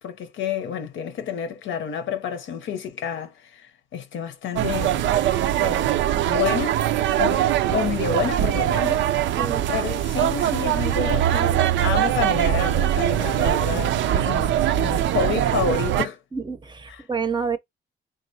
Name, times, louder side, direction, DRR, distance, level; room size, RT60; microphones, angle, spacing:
voice 1, 0.0-5.1 5.6-6.9 7.2-9.1 9.7-16.2 16.9-17.0, left 7 dB, 75° left, 0.8 m, -29 dB
sound 1, 4.6-16.1, right 12 dB, 70° right, 0.4 m, -22 dB
voice 2, 16.3-17.6, right 5 dB, 25° right, 0.6 m, -28 dB
3.9 x 3.4 x 2.7 m
cardioid pair, 90°, 20 cm